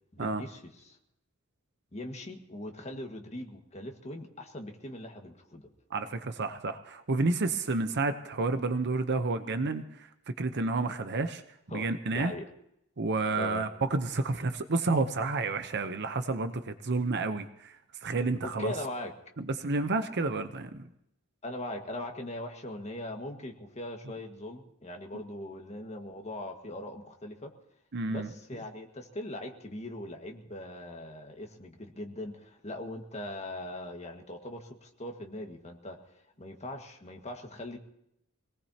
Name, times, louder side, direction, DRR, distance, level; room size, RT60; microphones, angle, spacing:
voice 1, 0.1-1.0 1.9-5.7 11.7-12.4 13.4-13.6 18.4-19.1 21.4-27.5 28.1-36.0 36.4-37.8, left 1 dB, 30° left, 3 dB, 1.7 m, -40 dB
voice 2, 5.9-11.4 11.7-12.3 13.0-18.7 19.4-20.9 25.1-25.2 27.9-28.3, right 3 dB, 50° right, 9 dB, 0.8 m, -30 dB
25.0 x 18.5 x 2.9 m, 0.78 s
head